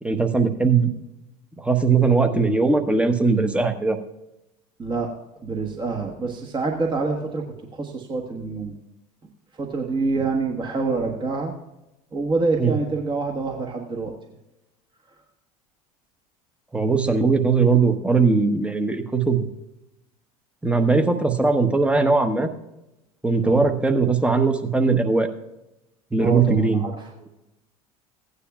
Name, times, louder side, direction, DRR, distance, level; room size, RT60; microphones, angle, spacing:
voice 1, 0.0-0.9 1.6-4.0 12.6-12.7 16.7-19.5 20.6-22.5 23.2-25.3 26.1-26.8, right 4 dB, 5° right, 6 dB, 1.0 m, -20 dB
voice 2, 4.8-5.1 5.4-7.4 7.7-8.7 9.6-11.5 12.1-14.1 23.4-23.7 26.2-26.9, right 3 dB, 25° right, 1 dB, 1.3 m, -26 dB
16.0 x 9.8 x 2.4 m, 0.92 s
figure-of-eight pair, 70°, 19 cm